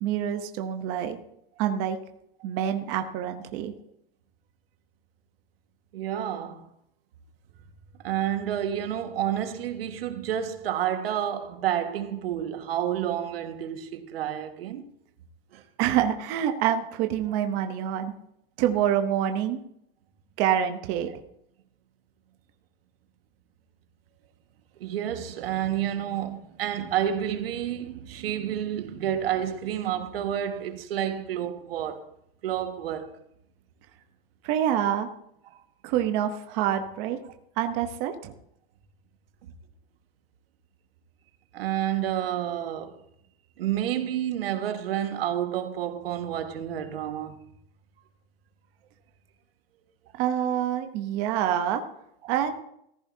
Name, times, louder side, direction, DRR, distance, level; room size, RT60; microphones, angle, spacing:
voice 1, 0.0-1.2 1.6-2.0 2.4-3.7 15.8-18.1 18.6-19.6 20.4-21.2 34.4-35.1 35.8-37.2 37.6-38.3 50.2-51.8 52.3-52.5, right 10 dB, 30° right, 0.8 m, -26 dB
voice 2, 5.9-6.7 8.0-14.9 15.5-15.6 24.8-32.0 32.4-33.1 35.5-35.6 41.5-43.0 43.6-47.5 52.2-52.3, right 10 dB, 80° right, 1.6 m, -29 dB
14.5 x 14.5 x 2.7 m
supercardioid pair, 170°, 29 cm